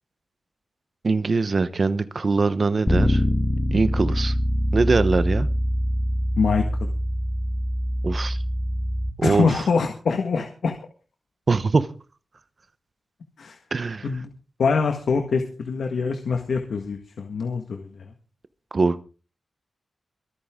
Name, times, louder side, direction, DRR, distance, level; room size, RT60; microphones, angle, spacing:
voice 1, 1.0-3.2 3.7-4.3 4.7-5.5 8.0-8.4 9.2-9.5 11.5-11.9 13.7-14.1 18.7-19.0, right 4 dB, 40° right, 13 dB, 1.0 m, -22 dB
Bass guitar, 2.9-9.1, equal, 15° left, 1.5 m, -24 dB
voice 2, 6.4-6.9 9.2-10.7 13.4-13.6 14.0-14.3 14.6-17.9, left 5 dB, 85° left, 5 dB, 1.7 m, -24 dB
23.5 x 9.4 x 3.8 m, 0.37 s
wide cardioid pair, 170°, 0 cm